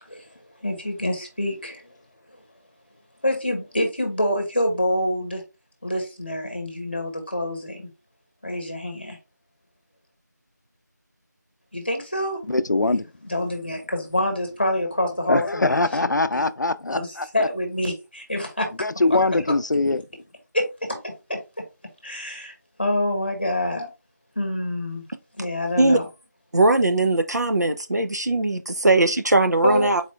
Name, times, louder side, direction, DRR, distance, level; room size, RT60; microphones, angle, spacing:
voice 1, 0.0-2.0 3.2-5.4 5.8-7.9 8.4-9.2 11.7-12.4 13.2-15.7 16.0-16.5 16.9-18.7 19.1-19.2 20.5-21.0 21.3-21.4 22.0-23.9 24.3-25.0 25.4-26.1 29.6-29.9, left 1 dB, 35° left, 1.1 m, -26 dB
voice 2, 12.5-13.0 15.3-17.5 18.8-20.0, left 2 dB, 80° left, 0.5 m, -22 dB
voice 3, 26.5-30.0, right 2 dB, 65° right, 0.7 m, -20 dB
4.2 x 2.4 x 4.3 m
figure-of-eight pair, 180°, 10 cm